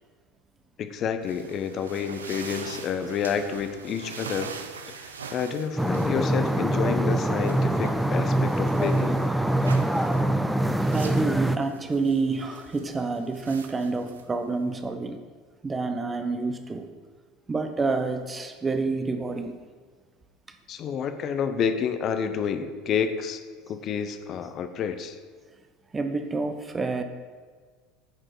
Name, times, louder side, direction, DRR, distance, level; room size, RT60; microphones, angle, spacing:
voice 1, 0.8-4.5 5.0-9.2 20.7-23.4 23.7-25.2, left 7 dB, 45° left, 9 dB, 0.7 m, -29 dB
sound 1, 1.2-14.9, right 5 dB, 80° right, 0.6 m, -44 dB
sound 2, 5.8-11.6, right 1 dB, 5° right, 0.5 m, -24 dB
voice 2, 10.7-15.2 15.6-16.9 17.5-19.6 20.5-20.6 25.9-27.0, right 3 dB, 20° right, 7 dB, 0.9 m, -28 dB
9.2 x 5.7 x 4.9 m, 1.5 s
figure-of-eight pair, 75°, 0 cm